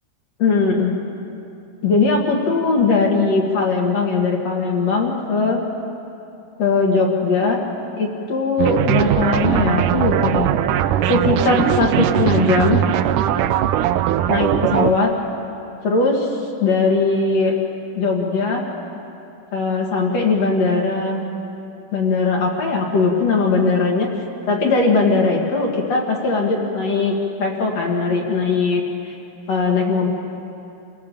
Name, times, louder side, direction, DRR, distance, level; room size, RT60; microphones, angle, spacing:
voice 1, 0.4-0.9 1.8-5.6 6.6-7.6 8.0-10.5 11.1-12.8 14.3-15.1 15.8-16.3 16.6-17.5 18.0-18.6 19.5-21.2 21.9-24.1 24.5-28.8 29.5-30.1, left 4 dB, 50° left, 0 dB, 2.9 m, -19 dB
sound 1, 8.6-14.9, right 11 dB, 80° right, 2.0 m, -19 dB
28.5 x 17.5 x 7.0 m, 2.7 s
omnidirectional pair, 4.3 m